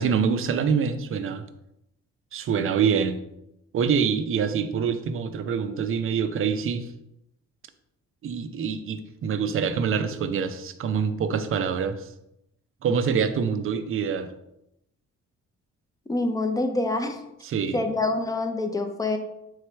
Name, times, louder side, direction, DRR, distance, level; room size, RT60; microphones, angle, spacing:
voice 1, 0.0-1.4 2.3-3.2 3.7-6.9 8.2-12.1 12.8-14.3 17.4-17.8, right 6 dB, 45° right, 10 dB, 0.5 m, -25 dB
voice 2, 16.1-17.2 17.7-19.2, left 2 dB, 10° left, 6 dB, 0.5 m, -26 dB
3.8 x 3.2 x 3.3 m, 0.84 s
cardioid pair, 90°, 30 cm